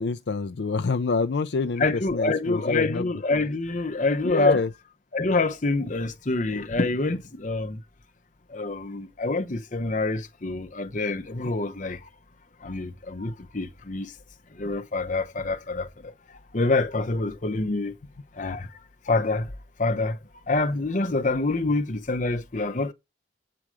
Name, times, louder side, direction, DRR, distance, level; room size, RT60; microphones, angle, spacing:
voice 1, 0.0-3.0 4.2-4.7, left 4 dB, 65° left, 0.5 m, -26 dB
voice 2, 1.8-4.6 5.1-7.8 8.5-12.0 12.6-14.1 14.6-16.1 16.5-17.9 18.3-18.7 19.1-19.5 19.8-20.2 20.5-22.9, left 3 dB, 40° left, 0.8 m, -26 dB
8.7 x 4.8 x 6.2 m
head